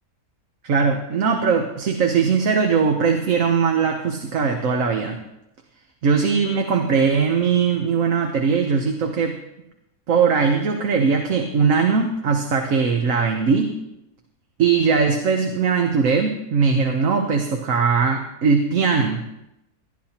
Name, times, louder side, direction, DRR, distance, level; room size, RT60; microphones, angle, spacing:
voice 1, 0.6-5.2 6.0-9.4 10.1-13.7 14.6-19.3, right 5 dB, 65° right, 3 dB, 1.3 m, -20 dB
19.5 x 12.0 x 2.9 m, 0.89 s
omnidirectional pair, 1.5 m